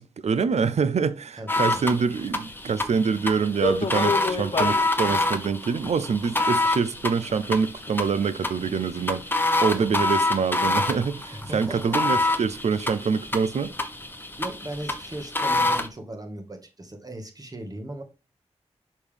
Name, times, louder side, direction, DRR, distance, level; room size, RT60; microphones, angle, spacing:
voice 1, 0.0-9.3 9.6-13.7, right 5 dB, 75° right, 0.5 m, -25 dB
voice 2, 1.4-1.9 9.7-10.0 11.3-12.2 14.4-18.0, right 1 dB, 35° right, 1.7 m, -38 dB
sound 1, 1.5-15.9, left 2 dB, 20° left, 1.0 m, -27 dB
sound 2, 3.5-4.9 5.9-6.0 6.6-6.7 7.2-7.3 7.9-8.0 8.6-8.7 9.0-9.1, left 4 dB, 50° left, 0.9 m, -27 dB
6.3 x 5.3 x 3.4 m
wide cardioid pair, 70°, 11 cm